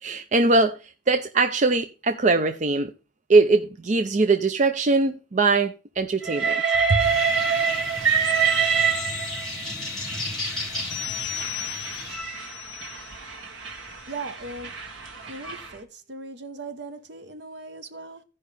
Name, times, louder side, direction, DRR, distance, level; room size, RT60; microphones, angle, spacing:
voice 1, 0.0-2.9 3.3-6.6 6.9-7.0, right 3 dB, 40° right, 0.5 m, -21 dB
Train, 6.2-9.6 10.5-15.7, right 6 dB, 80° right, 1.7 m, -26 dB
sound 1, 7.0-12.2, left 1 dB, ahead, 5.2 m, -34 dB
sound 2, 8.4-13.5 13.8-14.0, left 12 dB, 85° left, 0.7 m, -37 dB
voice 2, 14.1-14.8 15.3-18.2, right 3 dB, 60° right, 1.0 m, -38 dB
16.0 x 5.4 x 3.3 m
head